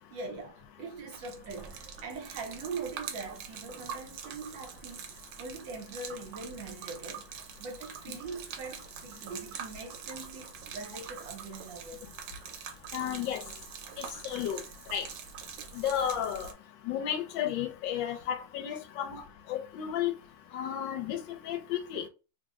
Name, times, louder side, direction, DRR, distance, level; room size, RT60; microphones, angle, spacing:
voice 1, 0.1-12.1 19.1-19.2, right 3 dB, 70° right, 1.4 m, -42 dB
Gurgling / Liquid, 1.1-16.5, right 7 dB, 85° right, 1.4 m, -44 dB
voice 2, 12.9-13.4 14.0-14.6 14.9-15.1 15.7-16.5 16.8-20.1 20.5-22.0, left 9 dB, 75° left, 1.3 m, -33 dB
3.3 x 2.0 x 3.6 m
omnidirectional pair, 2.2 m